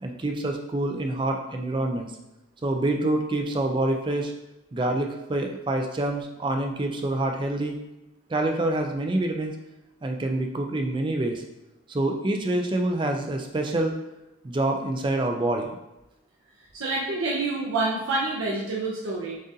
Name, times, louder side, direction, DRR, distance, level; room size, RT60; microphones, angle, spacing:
voice 1, 0.0-2.1 2.6-4.3 4.7-7.8 8.3-9.6 10.0-11.4 11.9-14.0 14.4-15.7, right 2 dB, 25° right, 3 dB, 0.3 m, -26 dB
voice 2, 16.7-19.4, right 2 dB, 75° right, -5 dB, 0.6 m, -27 dB
7.2 x 2.5 x 2.7 m, 0.94 s
head